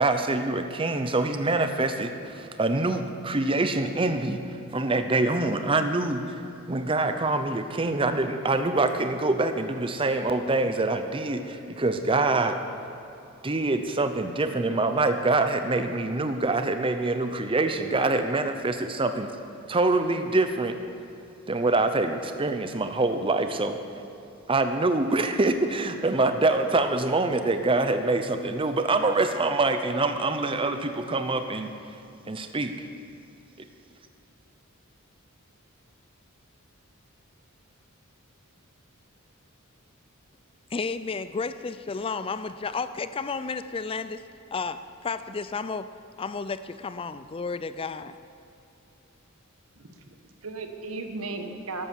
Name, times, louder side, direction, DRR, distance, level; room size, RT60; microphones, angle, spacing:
voice 1, 0.0-6.4 6.7-12.6 13.4-19.3 19.7-20.8 21.5-23.8 24.5-31.7 32.3-32.8 33.6-33.7, right 2 dB, 25° right, 8 dB, 0.7 m, -25 dB
voice 2, 40.7-44.2 44.5-45.9 46.2-48.1, left 4 dB, 25° left, 13 dB, 0.4 m, -32 dB
voice 3, 49.8-51.9, right 3 dB, 75° right, 6 dB, 1.4 m, -36 dB
13.0 x 12.0 x 7.1 m, 2.9 s
head